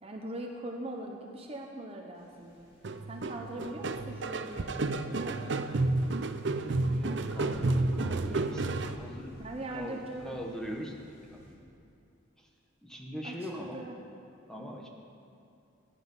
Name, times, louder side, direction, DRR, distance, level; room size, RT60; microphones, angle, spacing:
voice 1, 0.0-2.7 3.1-5.5 9.4-10.4 13.2-14.0, right 1 dB, 30° right, 2 dB, 0.9 m, -41 dB
sound 1, 2.2-11.5, equal, 50° left, 2.7 m, -53 dB
sound 2, 2.8-9.0, right 2 dB, 60° right, 0.6 m, -31 dB
voice 2, 6.7-9.4 9.7-11.6 12.4-12.5 12.8-13.8 14.5-14.9, equal, 5° left, -1 dB, 1.3 m, -42 dB
16.0 x 10.0 x 5.5 m, 2.6 s
head